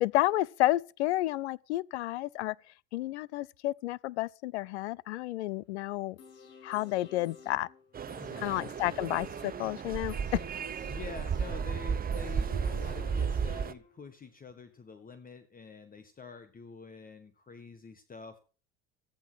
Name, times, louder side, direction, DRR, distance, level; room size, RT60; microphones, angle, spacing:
voice 1, 0.0-2.6 2.9-6.2 6.6-7.7 8.4-10.4, left 16 dB, 90° left, 0.5 m, -31 dB
sound 1, 6.2-14.2 14.5-14.6, left 7 dB, 70° left, 7.9 m, -52 dB
sound 2, 7.9-13.7, right 6 dB, 25° right, 0.9 m, -34 dB
voice 2, 8.2-8.5 10.9-18.4, left 5 dB, 25° left, 1.6 m, -47 dB
15.0 x 9.1 x 6.3 m
supercardioid pair, 90°, 33 cm